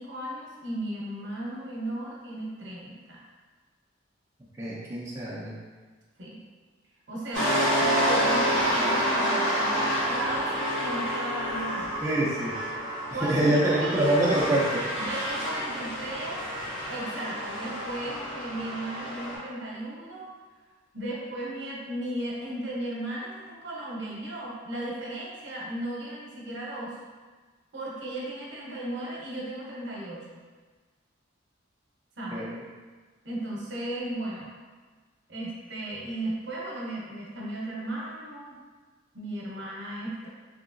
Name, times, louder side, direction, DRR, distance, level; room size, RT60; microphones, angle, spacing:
voice 1, 0.0-3.2 6.2-6.4 7.1-12.1 13.1-14.4 15.0-16.5 16.9-20.3 20.9-27.0 27.7-30.4 32.2-32.5 33.2-34.5 35.3-38.5 39.1-40.3, right 1 dB, 60° right, -4 dB, 0.7 m, -35 dB
voice 2, 4.6-5.5 12.0-12.6 13.2-14.8 32.3-32.6, right 1 dB, 15° right, -7 dB, 0.3 m, -25 dB
sound 1, 7.3-19.4, equal, 70° left, 1.0 m, -28 dB
2.8 x 2.7 x 2.5 m, 1.4 s
head